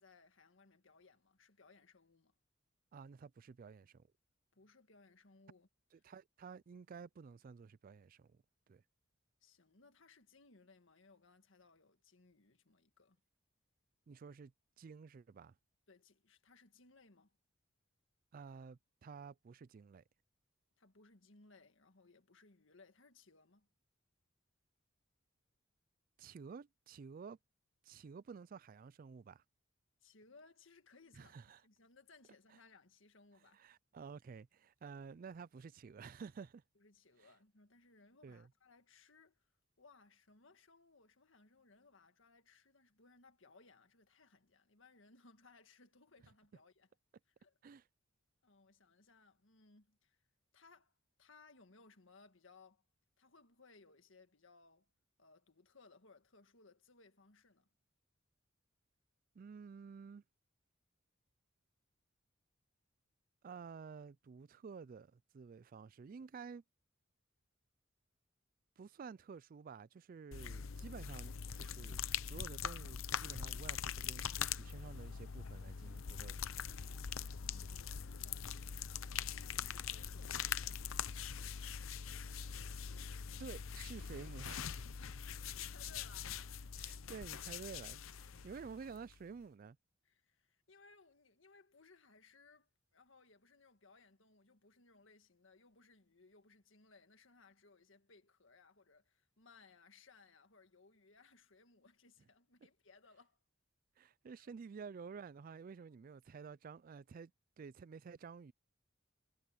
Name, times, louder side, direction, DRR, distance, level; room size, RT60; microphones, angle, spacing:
voice 1, 0.0-2.3 4.5-5.7 9.4-13.2 15.9-17.4 20.8-23.7 30.0-31.3 31.6-33.6 36.7-39.5 39.8-46.9 47.3-47.8 48.4-50.2 50.5-50.9 51.2-52.8 53.2-54.9 55.2-57.7 77.4-78.6 79.4-80.6 85.0-86.9 90.0-103.4 104.3-104.5, left 4 dB, 70° left, 1.8 m, -65 dB
voice 2, 2.9-4.1 5.9-8.4 8.7-8.8 14.1-14.5 14.8-15.5 18.3-20.0 26.2-27.4 27.8-29.4 31.1-31.6 33.5-36.6 37.2-37.3 38.2-38.5 47.6-47.8 59.4-60.2 63.4-66.6 68.8-76.4 83.4-84.8 86.8-89.8 104.0-107.3 107.6-108.5, right 5 dB, 45° right, 0.3 m, -51 dB
sound 1, 70.3-89.2, left 7 dB, 90° left, 0.7 m, -43 dB
head